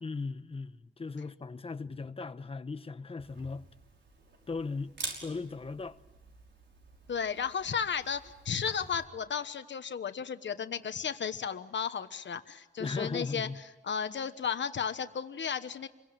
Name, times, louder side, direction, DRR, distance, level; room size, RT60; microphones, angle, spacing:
voice 1, 0.0-3.7 4.5-5.0 5.2-6.0 12.8-13.6, left 4 dB, 30° left, 1.0 m, -37 dB
Camera, 3.2-9.0, right 3 dB, 85° right, 5.8 m, -47 dB
voice 2, 7.1-13.5 13.8-15.9, left 7 dB, 90° left, 1.2 m, -34 dB
28.0 x 22.5 x 9.0 m
wide cardioid pair, 165°, 18 cm